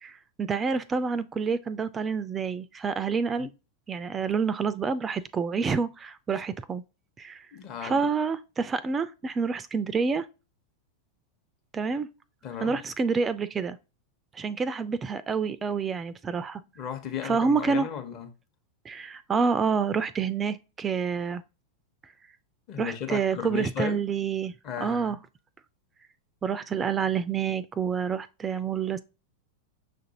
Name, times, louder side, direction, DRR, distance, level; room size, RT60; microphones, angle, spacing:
voice 1, 0.0-3.5 3.9-6.8 7.2-7.5 7.8-10.3 11.7-12.1 12.6-13.8 14.3-16.6 17.2-17.9 18.9-21.4 22.8-24.5 24.8-25.2 26.4-29.0, right 5 dB, 20° right, 0.3 m, -28 dB
voice 2, 7.5-8.0 12.4-12.8 16.7-18.3 22.7-24.0 24.6-25.2, left 9 dB, 40° left, 1.0 m, -35 dB
6.2 x 2.6 x 2.8 m
hypercardioid pair, 95°, 0 cm